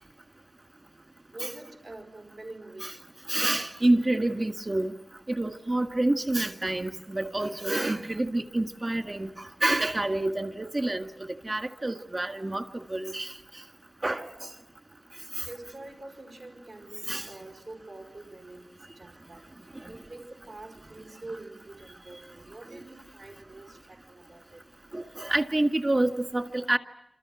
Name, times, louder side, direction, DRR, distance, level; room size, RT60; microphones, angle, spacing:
voice 1, 1.3-3.1 15.4-19.5 19.9-24.6, right 2 dB, 80° right, 5.0 m, -45 dB
voice 2, 3.3-4.9 5.3-9.3 9.6-11.1 11.4-12.6 12.9-13.3 14.0-14.3 17.1-17.3 24.9-26.8, right 2 dB, 35° right, 1.9 m, -27 dB
30.0 x 27.5 x 6.3 m
wide cardioid pair, 80°, 0 cm